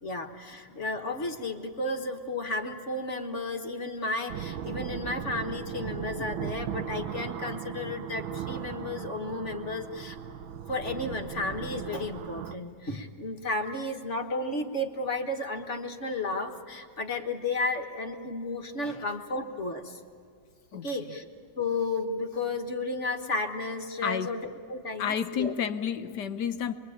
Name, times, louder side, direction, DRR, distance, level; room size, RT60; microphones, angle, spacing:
voice 1, 0.0-10.2 10.7-20.0 20.8-21.3 21.6-25.5, left 2 dB, 40° left, 5 dB, 1.6 m, -33 dB
sound 1, 4.3-12.6, right 9 dB, 80° right, 1.7 m, -37 dB
voice 2, 20.7-21.2 24.0-24.4 25.0-26.7, left 8 dB, 65° left, 9 dB, 1.4 m, -31 dB
27.0 x 23.0 x 8.7 m, 2.3 s
omnidirectional pair, 2.1 m